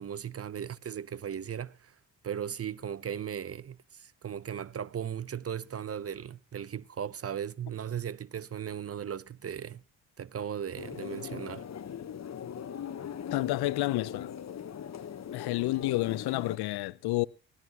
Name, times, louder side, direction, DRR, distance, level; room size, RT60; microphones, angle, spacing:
voice 1, 0.0-1.9 2.2-9.8 10.2-11.6, right 8 dB, 35° right, 0.7 m, -37 dB
sound 1, 10.8-16.6, left 8 dB, 40° left, 1.2 m, -40 dB
voice 2, 13.3-14.3 15.3-17.3, left 18 dB, 70° left, 0.8 m, -30 dB
20.0 x 14.5 x 3.0 m
supercardioid pair, 55°, 39 cm